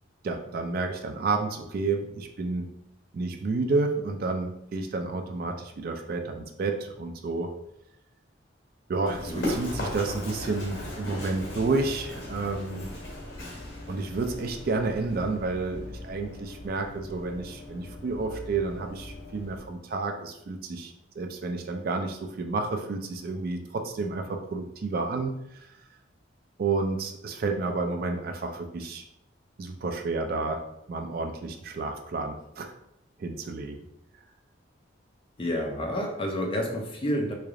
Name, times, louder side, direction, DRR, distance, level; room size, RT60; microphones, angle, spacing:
voice 1, 0.2-2.7 3.1-7.5 8.9-12.9 13.9-25.4 26.6-29.0 29.6-30.6 30.9-32.7 33.2-33.8, right 3 dB, 50° right, 5 dB, 0.3 m, -30 dB
Run, 9.1-19.6, left 1 dB, 85° left, 1.4 m, -38 dB
voice 2, 35.4-37.3, equal, 30° left, 1 dB, 0.5 m, -29 dB
3.2 x 2.4 x 3.6 m, 0.81 s
head